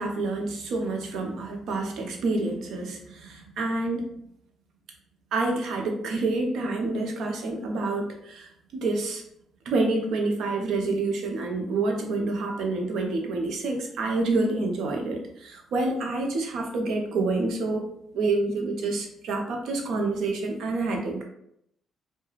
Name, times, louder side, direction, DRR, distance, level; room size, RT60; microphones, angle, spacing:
voice 1, 0.0-4.1 5.3-9.2 9.7-17.8 18.1-21.2, right 3 dB, 75° right, 2 dB, 0.6 m, -28 dB
2.3 x 2.2 x 3.1 m, 0.75 s
cardioid pair, 90°, 0 cm